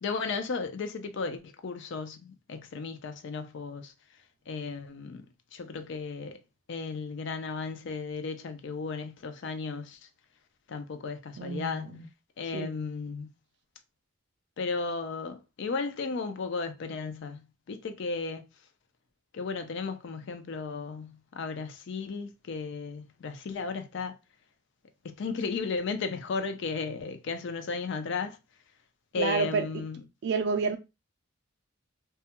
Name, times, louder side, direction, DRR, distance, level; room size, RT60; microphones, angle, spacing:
voice 1, 0.0-3.9 4.5-6.4 6.7-10.0 10.7-12.0 12.4-13.3 14.6-18.4 19.3-24.1 25.0-28.4 29.1-30.0, left 4 dB, 60° left, 0.4 m, -35 dB
voice 2, 11.4-12.1 12.5-12.7 29.2-29.7 30.2-30.8, right 4 dB, 55° right, 0.4 m, -29 dB
2.3 x 2.1 x 2.8 m
head